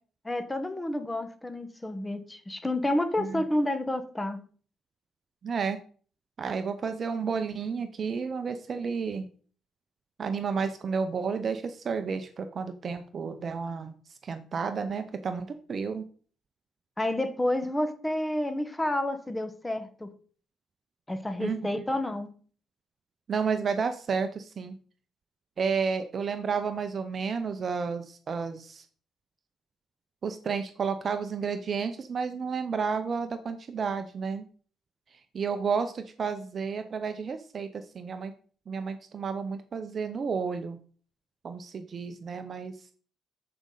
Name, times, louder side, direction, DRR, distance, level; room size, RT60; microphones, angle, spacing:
voice 1, 0.2-4.4 17.0-20.1 21.1-22.3, left 1 dB, 10° left, 9 dB, 1.3 m, -30 dB
voice 2, 5.4-5.8 6.4-9.3 10.2-13.9 14.2-16.0 21.4-21.6 23.3-24.8 25.6-28.8 30.2-34.4 35.1-38.3 38.7-40.8 41.4-42.9, right 5 dB, 45° right, 8 dB, 0.7 m, -31 dB
12.5 x 5.2 x 3.9 m, 0.44 s
cardioid pair, 90°, 0 cm